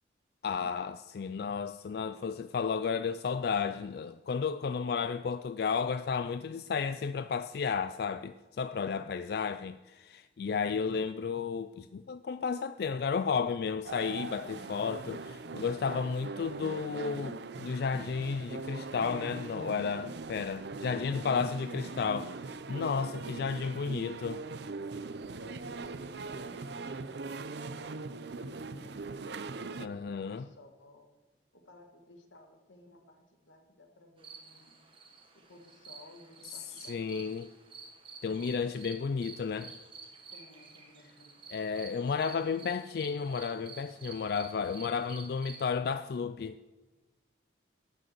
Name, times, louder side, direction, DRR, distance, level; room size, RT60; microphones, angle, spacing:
voice 1, 0.4-22.3 22.7-24.4 29.8-30.4 36.9-37.5 38.2-39.7 41.5-46.6, left 5 dB, 55° left, 0.3 m, -33 dB
sound 1, 13.8-29.9, right 3 dB, 60° right, 0.5 m, -41 dB
voice 2, 21.0-22.1 23.2-23.6 25.4-27.9 28.3-29.2 29.6-31.1 31.5-34.8 35.5-37.3 38.2-38.8 40.3-41.9, left 1 dB, 90° left, 1.9 m, -57 dB
sound 2, 34.2-45.6, right 4 dB, 30° right, 1.6 m, -50 dB
12.0 x 6.4 x 7.7 m
head